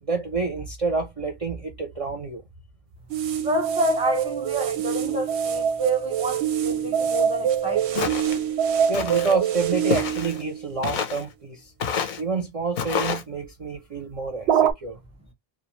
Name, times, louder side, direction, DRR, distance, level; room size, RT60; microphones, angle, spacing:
voice 1, 0.0-2.4 8.9-11.7 12.2-15.0, right 4 dB, 45° right, 0.5 m, -28 dB
sound 1, 3.1-10.8 14.5-14.7, right 8 dB, 85° right, 0.8 m, -25 dB
voice 2, 3.4-8.0, right 1 dB, 5° right, 0.7 m, -28 dB
Walk footsteps, 8.0-8.4 8.9-9.4 9.9-10.4 10.8-11.3 11.8-12.2 12.8-13.2, left 7 dB, 60° left, 0.6 m, -28 dB
2.5 x 2.2 x 2.9 m
omnidirectional pair, 1.1 m